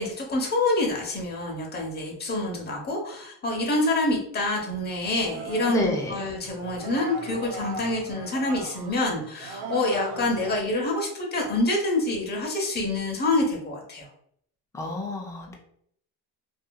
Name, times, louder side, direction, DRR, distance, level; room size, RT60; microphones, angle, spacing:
voice 1, 0.0-14.0, left 2 dB, 25° left, 0 dB, 0.9 m, -27 dB
sound 1, 5.1-10.6, right 4 dB, 75° right, 0.6 m, -38 dB
voice 2, 5.7-6.1 14.7-15.5, left 2 dB, 10° left, -1 dB, 0.5 m, -29 dB
2.7 x 2.5 x 2.3 m, 0.67 s
cardioid pair, 110°, 41 cm